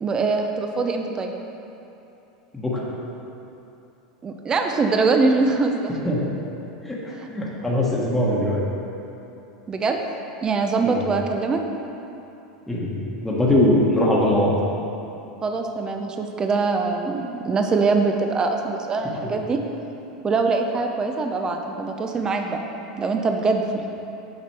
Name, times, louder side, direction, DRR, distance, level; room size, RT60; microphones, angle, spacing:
voice 1, 0.0-1.3 4.2-6.0 7.2-7.3 9.7-10.0 10.4-11.6 15.4-19.6 20.2-22.6 23.0-23.9, right 4 dB, 20° right, 4 dB, 0.5 m, -23 dB
voice 2, 6.8-8.6 10.8-11.0 12.7-12.9 13.2-14.5 19.2-19.3, left 1 dB, 5° left, -5 dB, 1.3 m, -21 dB
7.2 x 5.8 x 4.7 m, 2.9 s
supercardioid pair, 115°, 3 cm